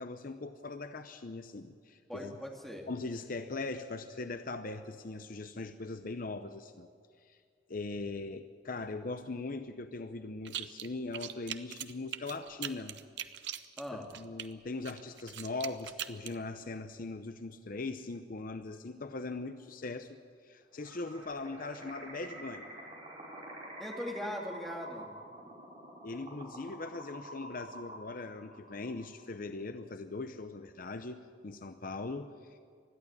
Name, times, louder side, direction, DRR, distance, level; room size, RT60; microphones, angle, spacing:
voice 1, 0.0-2.4 2.9-6.9 7.2-7.4 7.7-13.0 13.9-22.7 26.0-32.6, left 3 dB, 50° left, 9 dB, 0.7 m, -40 dB
voice 2, 2.1-2.9 13.8-14.1 23.8-25.1, equal, ahead, 0 dB, 2.5 m, -40 dB
sound 1, 10.4-10.9 11.1-14.5 14.8-16.3, right 11 dB, 70° right, 0.9 m, -40 dB
sound 2, 20.8-29.3, right 1 dB, 30° right, 5.5 m, -48 dB
21.0 x 13.5 x 9.8 m, 2.1 s
head